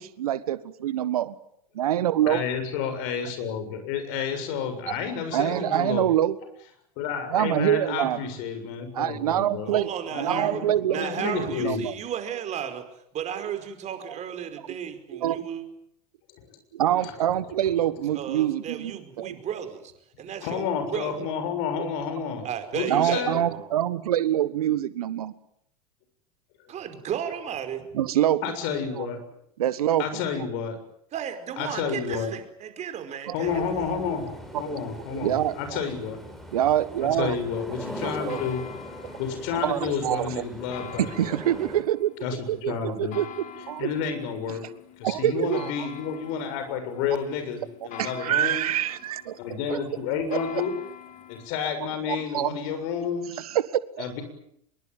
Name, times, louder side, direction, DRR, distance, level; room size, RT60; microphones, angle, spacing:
voice 1, 0.0-1.3 1.7-2.4 4.9-5.0 5.3-6.4 7.3-8.2 8.9-9.9 10.2-11.9 14.1-14.2 14.7-14.8 15.1-15.4 16.7-19.4 21.8-21.9 22.9-25.3 27.9-28.4 28.9-29.1 29.6-30.0 33.3-33.4 34.1-34.2 34.7-34.8 35.1-35.8 36.5-37.4 38.0-38.4 39.5-40.5 41.0-43.3 43.7-43.9 45.0-45.9 48.0-49.4 49.7-49.8 50.3-50.6 52.1-52.6 53.4-53.7 54.0-54.1, right 12 dB, 70° right, 16 dB, 1.5 m, -26 dB
voice 2, 2.3-6.1 7.0-9.7 10.1-11.9 16.5-16.6 17.0-17.1 20.2-22.5 22.7-23.4 28.4-29.2 30.0-30.8 31.6-32.3 33.3-34.3 34.6-36.2 37.0-38.6 39.2-41.4 42.2-43.2 43.8-44.6 45.0-48.6 49.4-50.7 51.3-53.3 54.0-54.2, left 7 dB, 55° left, 8 dB, 7.2 m, -30 dB
voice 3, 9.7-10.6 10.9-12.9 13.1-15.6 18.1-19.9 20.2-21.1 22.4-23.6 26.7-27.8 31.1-33.9, right 9 dB, 35° right, 8 dB, 4.9 m, -34 dB
sound 1, 33.4-41.8, equal, ahead, 6.3 m, -41 dB
sound 2, 33.5-51.5, left 9 dB, 40° left, 4.1 m, -46 dB
25.0 x 23.0 x 9.3 m, 0.73 s
hypercardioid pair, 85°, 19 cm